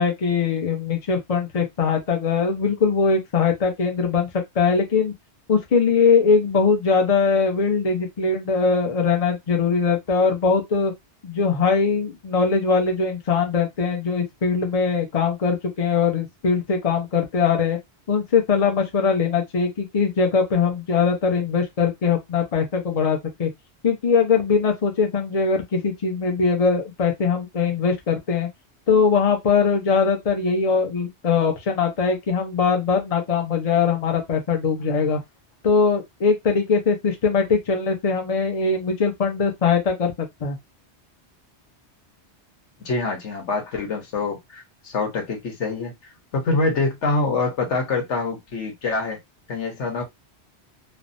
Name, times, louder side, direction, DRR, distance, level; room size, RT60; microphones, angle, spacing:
voice 1, 0.0-4.3 4.6-5.1 5.5-10.9 11.2-17.8 18.1-23.5 23.8-28.5 28.9-35.2 35.6-40.6, left 5 dB, 40° left, 0.7 m, -21 dB
voice 2, 42.8-45.9 46.3-49.2 49.5-50.0, left 3 dB, 85° left, 1.4 m, -25 dB
3.3 x 2.0 x 2.6 m
omnidirectional pair, 1.2 m